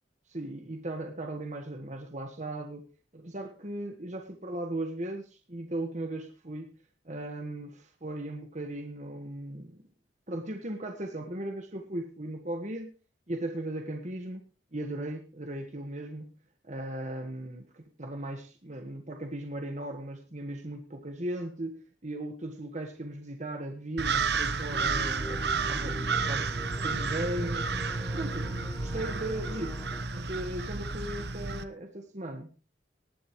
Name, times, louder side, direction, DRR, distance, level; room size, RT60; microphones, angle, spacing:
voice 1, 0.3-2.9 3.1-6.7 7.0-9.8 10.3-12.9 13.3-14.4 14.7-16.3 16.6-26.6 26.8-27.8 28.1-29.8 30.1-32.5, right 1 dB, 40° right, 4 dB, 1.6 m, -37 dB
sound 1, 24.0-31.6, right 4 dB, 65° right, 1.1 m, -31 dB
sound 2, 24.7-30.0, left 1 dB, 10° left, 0.5 m, -44 dB
19.5 x 11.0 x 3.2 m, 0.33 s
head